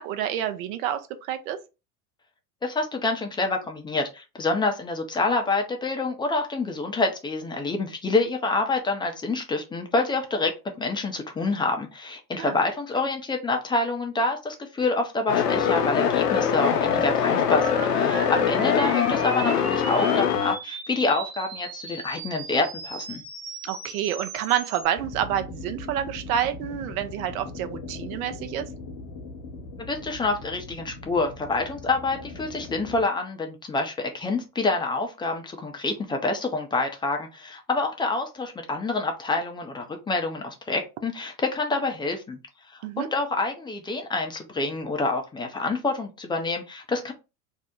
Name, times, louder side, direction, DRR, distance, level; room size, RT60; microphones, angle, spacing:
voice 1, 0.0-1.6 12.4-12.6 18.4-18.7 23.6-28.7 42.8-43.1, right 10 dB, 60° right, 0.7 m, -28 dB
voice 2, 2.6-10.5 10.8-23.2 29.8-42.4 42.7-47.1, left 3 dB, 10° left, 0.4 m, -27 dB
sound 1, 15.3-20.6, left 8 dB, 85° left, 0.6 m, -23 dB
sound 2, 17.4-24.8, right 4 dB, 85° right, 1.3 m, -38 dB
sound 3, 25.0-33.1, left 3 dB, 45° left, 0.9 m, -40 dB
2.7 x 2.0 x 3.6 m
hypercardioid pair, 85°, 47 cm